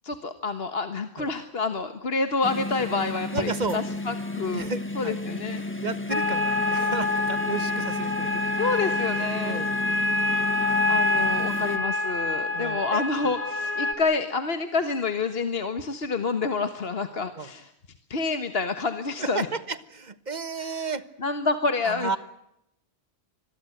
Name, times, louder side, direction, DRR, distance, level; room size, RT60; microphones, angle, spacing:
voice 1, 0.0-4.7 5.0-5.6 8.6-9.7 10.9-17.7 18.1-19.5 20.6-20.8 21.2-22.2, left 4 dB, 65° left, 8 dB, 1.6 m, -28 dB
sound 1, 2.4-11.8, left 2 dB, 10° left, 1.8 m, -33 dB
voice 2, 3.3-3.8 4.5-5.2 5.8-8.4 9.2-9.8 12.5-13.3 17.4-17.5 19.2-21.1 21.8-22.2, right 4 dB, 40° right, 13 dB, 1.4 m, -33 dB
sound 2, 6.1-13.9, left 2 dB, 35° left, 3.4 m, -26 dB
26.5 x 21.5 x 8.0 m, 0.82 s
omnidirectional pair, 1.1 m